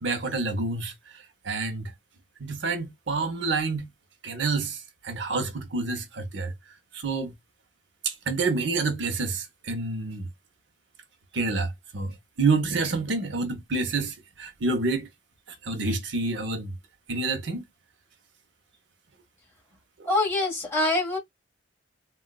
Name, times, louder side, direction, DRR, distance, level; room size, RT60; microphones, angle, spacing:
voice 1, 0.0-1.9 2.4-3.9 4.2-6.5 6.9-7.3 8.0-10.3 11.3-15.1 15.5-16.7 17.1-17.6, right 3 dB, 70° right, 0.7 m, -28 dB
voice 2, 20.0-21.2, left 2 dB, 15° left, 1.3 m, -24 dB
3.7 x 2.2 x 2.2 m
head